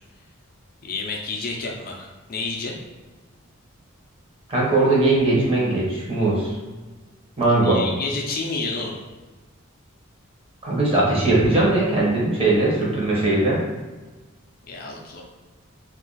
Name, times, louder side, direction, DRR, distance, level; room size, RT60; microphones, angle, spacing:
voice 1, 0.8-2.8 7.6-9.0 14.7-15.2, left 3 dB, 45° left, 0 dB, 0.4 m, -30 dB
voice 2, 4.5-6.5 7.4-7.8 10.6-13.6, right 2 dB, 30° right, -5 dB, 0.9 m, -20 dB
2.5 x 2.3 x 3.8 m, 1.2 s
head